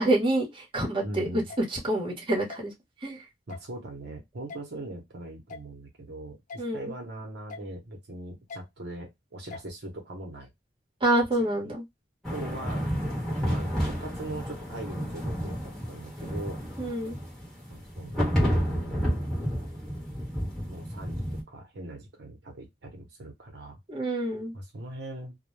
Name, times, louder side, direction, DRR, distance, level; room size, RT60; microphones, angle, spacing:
voice 1, 0.0-1.4 1.7-2.7 3.0-3.2 6.6-6.9 11.0-11.8 16.8-17.2 23.9-24.5, right 1 dB, 30° right, -2 dB, 1.0 m, -27 dB
voice 2, 1.0-1.5 3.5-10.5 11.4-11.7 12.3-12.9 13.3-16.6 17.7-19.3 20.7-23.8 24.5-25.4, right 1 dB, 65° right, 1 dB, 0.8 m, -41 dB
sound 1, 1.5-1.6 2.5-2.6 3.5-3.7 4.5-4.6 5.5-5.7 6.5-6.6 7.5-7.7 8.5-8.6 9.5-9.7, left 4 dB, 45° left, 0.4 m, -41 dB
sound 2, 12.2-21.4, equal, ahead, 1.0 m, -30 dB
2.2 x 2.1 x 3.0 m, 0.17 s
head